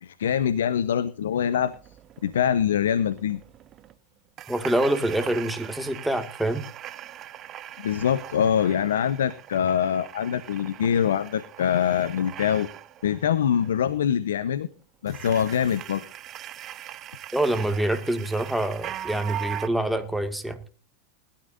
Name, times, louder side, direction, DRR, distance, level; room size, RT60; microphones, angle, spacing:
voice 1, 0.0-1.7 2.2-3.4 7.8-12.7 13.0-14.7 15.0-16.0, left 8 dB, 90° left, 0.8 m, -24 dB
sound 1, 1.3-3.9 4.4-13.9 15.1-19.7, right 12 dB, 35° right, 1.0 m, -41 dB
voice 2, 4.5-6.6 17.3-20.6, right 1 dB, ahead, 2.0 m, -26 dB
20.0 x 13.0 x 2.6 m
hypercardioid pair, 120°, 0 cm